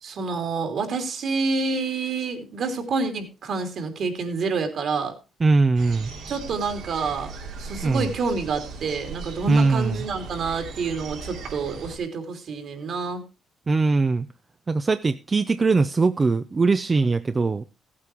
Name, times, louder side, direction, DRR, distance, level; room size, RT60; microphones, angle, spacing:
voice 1, 0.0-5.1 6.3-7.3 7.6-13.2, right 4 dB, 60° right, 6 dB, 3.1 m, -28 dB
voice 2, 5.4-6.1 7.8-8.1 9.5-10.0 13.7-14.3 14.7-17.6, right 3 dB, 30° right, 11 dB, 0.6 m, -21 dB
sound 1, 5.8-12.0, right 4 dB, 80° right, 3.1 m, -38 dB
15.5 x 8.6 x 4.5 m, 0.29 s
cardioid pair, 90°, 0 cm